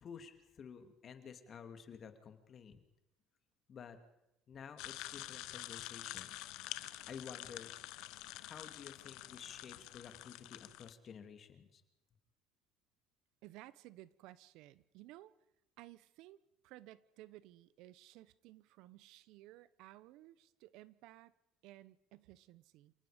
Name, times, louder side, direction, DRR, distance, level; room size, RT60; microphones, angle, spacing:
voice 1, 0.0-2.8 3.7-4.0 4.5-6.4 7.1-7.7 8.4-11.8, left 7 dB, 45° left, 7 dB, 2.5 m, -52 dB
Opening A Fizzy Can, 4.8-10.9, left 17 dB, 75° left, 0.9 m, -47 dB
voice 2, 13.4-15.3 15.8-21.3 21.6-22.9, right 16 dB, 75° right, 18 dB, 0.8 m, -57 dB
28.5 x 19.0 x 5.1 m, 0.90 s
supercardioid pair, 95°, 0 cm